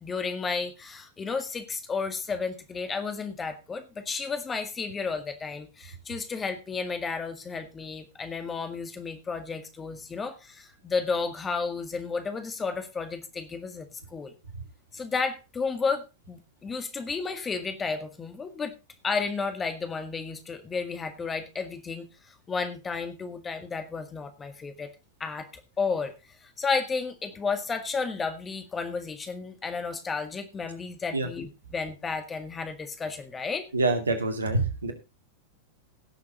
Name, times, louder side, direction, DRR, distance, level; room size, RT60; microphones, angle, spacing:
voice 1, 0.0-13.9 14.1-14.3 14.9-18.7 19.0-24.9 25.2-25.5 25.8-26.1 26.4-33.7, left 4 dB, 20° left, 8 dB, 1.9 m, -32 dB
voice 2, 33.7-34.9, right 3 dB, 75° right, 6 dB, 2.3 m, -26 dB
17.0 x 7.1 x 4.1 m, 0.27 s
figure-of-eight pair, 90°, 0 cm